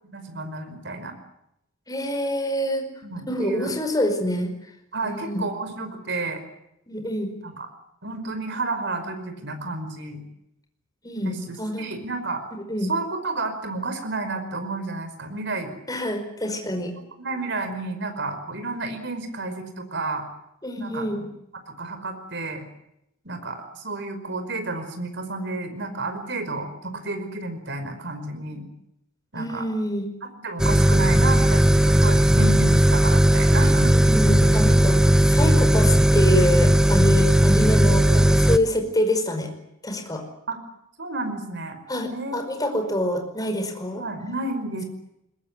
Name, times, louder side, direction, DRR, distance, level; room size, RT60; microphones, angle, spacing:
voice 1, 0.0-1.1 3.0-3.7 4.9-6.4 7.4-7.7 8.0-10.2 11.2-12.4 12.9-15.7 16.5-16.6 17.2-20.2 20.8-21.3 21.7-22.6 23.2-28.7 29.3-29.7 30.2-34.2 40.5-40.6 41.0-41.8 42.1-42.8 44.0-44.8, right 2 dB, 60° right, 7 dB, 5.3 m, -31 dB
voice 2, 1.9-2.9 3.3-4.5 5.0-5.4 6.9-7.3 11.0-11.9 12.7-12.9 15.9-16.9 20.6-21.2 29.3-30.1 34.0-39.5 39.8-40.2 41.9-44.0, left 1 dB, 20° left, 5 dB, 5.1 m, -26 dB
sound 1, 30.6-38.6, right 1 dB, 5° right, 1.0 m, -17 dB
21.5 x 21.0 x 9.9 m, 0.80 s
head